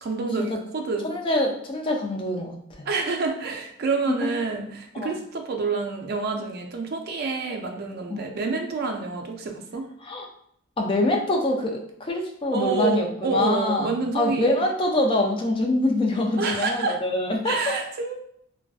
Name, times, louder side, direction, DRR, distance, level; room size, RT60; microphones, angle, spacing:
voice 1, 0.0-1.0 2.9-9.8 12.5-14.5 16.4-17.0 17.5-18.2, right 4 dB, 50° right, 3 dB, 0.4 m, -28 dB
voice 2, 1.0-2.9 4.2-4.3 4.9-5.2 8.1-8.3 10.0-10.3 10.8-17.8, left 1 dB, 25° left, 1 dB, 0.3 m, -25 dB
2.5 x 2.2 x 2.3 m, 0.68 s
head